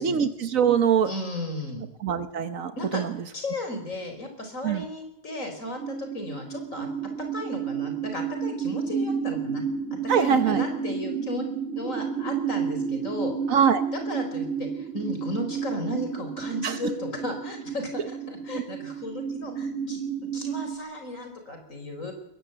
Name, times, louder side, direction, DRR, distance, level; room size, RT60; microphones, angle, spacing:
voice 1, 0.0-1.1 2.0-3.1 4.6-4.8 10.1-10.6 13.5-13.8 16.6-16.8 18.5-18.6, right 7 dB, 80° right, 10 dB, 1.4 m, -23 dB
voice 2, 1.0-1.8 2.8-3.0 3.3-6.9 7.3-9.6 10.1-11.5 11.8-13.3 13.9-20.0 20.3-22.1, left 1 dB, 75° left, 5 dB, 4.9 m, -34 dB
sound 1, 5.8-20.8, right 7 dB, 65° right, 3.1 m, -31 dB
21.5 x 17.0 x 7.9 m, 0.79 s
omnidirectional pair, 1.4 m